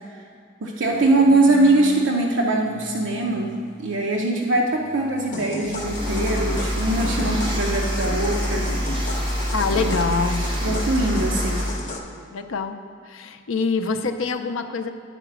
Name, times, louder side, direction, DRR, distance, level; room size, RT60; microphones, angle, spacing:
voice 1, 0.6-3.5 3.8-8.7 9.7-10.0 10.6-11.6, right 2 dB, 65° right, -1 dB, 0.7 m, -22 dB
sound 1, 0.8-2.1 2.6-4.3 4.6-7.3, left 1 dB, ahead, 1.9 m, -38 dB
sound 2, 5.3-12.0, left 2 dB, 40° left, 0.8 m, -34 dB
sound 3, 5.6-11.8, equal, 25° right, 1.3 m, -26 dB
voice 2, 9.5-10.5 12.3-12.8 13.0-14.9, left 4 dB, 75° left, 8 dB, 0.5 m, -25 dB
11.0 x 4.0 x 5.9 m, 2.3 s
head